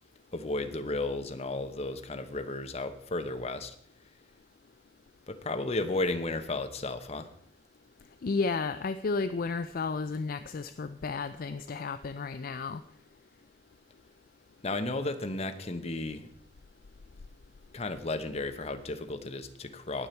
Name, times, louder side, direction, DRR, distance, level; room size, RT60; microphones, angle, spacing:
voice 1, 0.3-3.7 5.3-7.3 14.6-16.3 17.7-20.1, left 2 dB, 35° left, 8 dB, 1.0 m, -33 dB
voice 2, 8.2-12.8, left 4 dB, 50° left, 11 dB, 0.4 m, -32 dB
19.0 x 6.9 x 4.5 m, 0.67 s
head